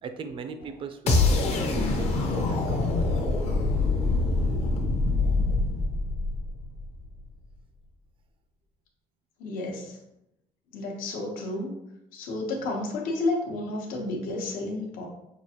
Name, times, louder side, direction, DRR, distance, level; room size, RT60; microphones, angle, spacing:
voice 1, 0.0-3.1, right 5 dB, 35° right, 9 dB, 0.4 m, -39 dB
sound 1, 1.1-7.0, left 3 dB, 50° left, 0.8 m, -25 dB
voice 2, 9.4-10.0 10.7-11.7 12.1-15.1, left 2 dB, 75° left, 0 dB, 1.0 m, -31 dB
6.0 x 2.5 x 2.8 m, 0.84 s
cardioid pair, 125°, 15 cm